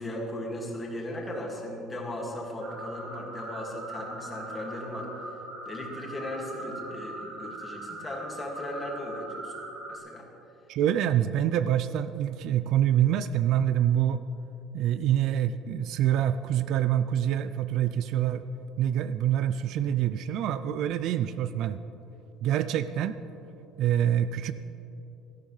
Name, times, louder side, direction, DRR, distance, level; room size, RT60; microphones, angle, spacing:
voice 1, 0.0-5.1 5.7-9.5 9.9-10.3, left 1 dB, 15° left, -2 dB, 2.1 m, -37 dB
sound 1, 2.6-10.0, right 1 dB, 80° right, 2.8 m, -41 dB
voice 2, 10.7-14.2 14.7-18.4 18.8-21.8 22.4-23.1 23.8-24.5, right 10 dB, 55° right, 13 dB, 0.4 m, -26 dB
17.5 x 13.0 x 3.3 m, 3.0 s
cardioid pair, 160°, 0 cm